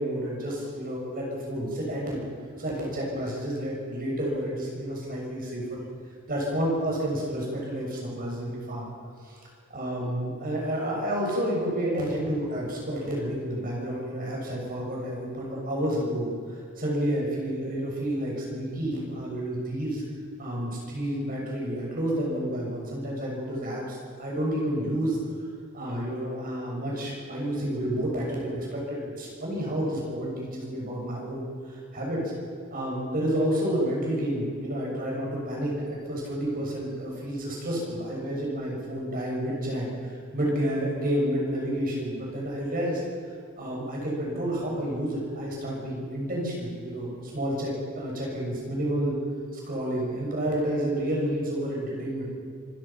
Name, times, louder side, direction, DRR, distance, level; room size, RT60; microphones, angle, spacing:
voice 1, 0.0-2.2 2.6-5.8 6.3-8.9 9.2-9.4 9.7-16.3 16.8-20.0 20.4-25.2 25.7-32.2 32.7-39.9 40.3-43.0 43.6-49.2 49.5-52.3, right 1 dB, 40° right, -2 dB, 6.9 m, -30 dB
26.0 x 17.0 x 5.9 m, 2.3 s
head